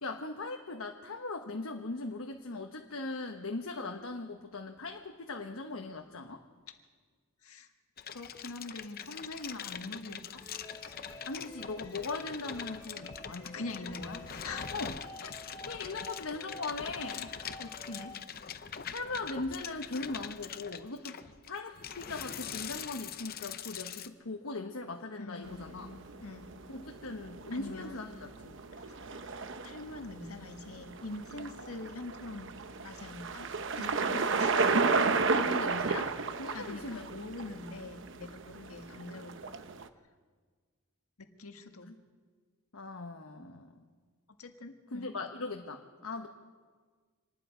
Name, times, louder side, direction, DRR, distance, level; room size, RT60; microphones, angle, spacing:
voice 1, 0.0-6.4 11.2-13.6 14.7-15.0 15.6-17.3 18.9-21.2 21.5-25.9 26.7-28.6 35.2-37.1 38.5-38.7 42.7-43.8 44.9-46.3, left 3 dB, 70° left, 3 dB, 1.2 m, -39 dB
sound 1, 8.0-24.1, left 8 dB, 45° left, 0.7 m, -43 dB
voice 2, 8.1-10.4 13.4-14.8 15.2-15.3 16.8-17.3 17.6-18.2 25.2-26.5 27.5-28.1 28.8-29.4 29.6-33.5 33.8-34.9 36.5-39.4 41.2-42.0 44.4-45.1, left 2 dB, 85° left, 5 dB, 1.7 m, -44 dB
sound 2, 10.4-18.2, left 2 dB, 20° left, 3.9 m, -50 dB
sound 3, 25.4-39.9, right 4 dB, 60° right, 0.9 m, -33 dB
26.0 x 19.5 x 5.1 m, 1.5 s
head